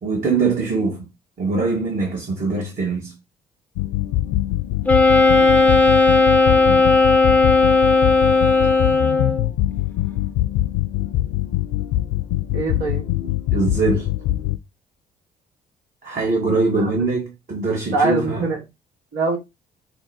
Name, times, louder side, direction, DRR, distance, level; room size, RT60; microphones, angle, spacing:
voice 1, 0.0-1.0 1.4-3.1 6.7-6.9 13.5-14.1 16.0-18.5, right 3 dB, 40° right, 1.4 m, -22 dB
sound 1, 3.8-14.6, left 15 dB, 65° left, 0.4 m, -23 dB
Wind instrument woodwind instrument, 4.9-9.5, left 3 dB, 5° left, 0.9 m, -15 dB
voice 2, 5.4-5.9 6.5-6.6 12.5-13.1 16.7-17.1 17.9-18.6 19.1-19.4, right 3 dB, 65° right, 1.7 m, -24 dB
5.0 x 2.2 x 4.1 m
figure-of-eight pair, 45°, 21 cm